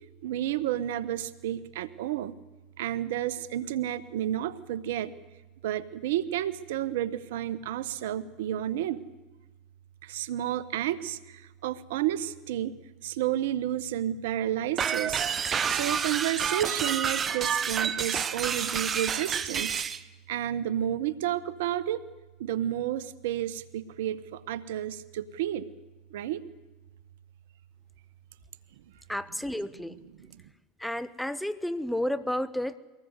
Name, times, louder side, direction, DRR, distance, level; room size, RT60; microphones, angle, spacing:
voice 1, 0.2-2.4 2.8-5.1 5.6-9.0 10.0-12.8 13.0-15.3 15.7-19.8 20.3-22.0 22.4-25.7 26.1-26.4 30.3-30.4, right 12 dB, 75° right, 16 dB, 1.2 m, -31 dB
sound 1, 14.8-20.0, right 7 dB, 30° right, 1.1 m, -29 dB
voice 2, 29.1-30.0 30.8-32.8, left 1 dB, 5° left, 16 dB, 1.1 m, -31 dB
23.0 x 19.0 x 8.2 m, 1.2 s
hypercardioid pair, 100°, 0 cm